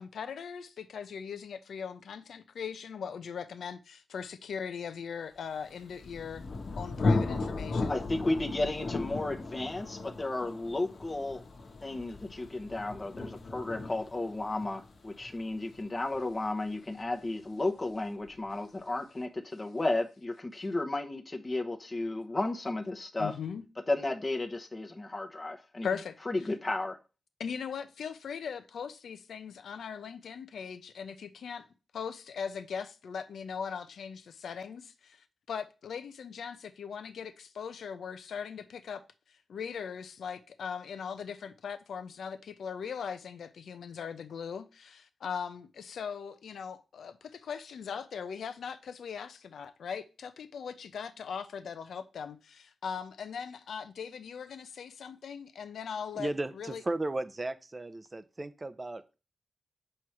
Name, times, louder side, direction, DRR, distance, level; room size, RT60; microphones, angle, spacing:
voice 1, 0.0-6.5 6.8-7.9 23.2-23.6 25.8-26.2 27.4-31.7 31.9-39.0 39.5-56.8, left 6 dB, 85° left, 0.7 m, -39 dB
Thunder, 5.7-17.2, left 3 dB, 65° left, 1.3 m, -36 dB
voice 2, 7.9-11.4 11.8-23.3 23.9-25.9 26.3-27.0, left 2 dB, 25° left, 1.0 m, -33 dB
voice 3, 56.2-59.2, right 2 dB, 25° right, 0.6 m, -35 dB
7.7 x 3.2 x 5.8 m
cardioid pair, 90°, 0 cm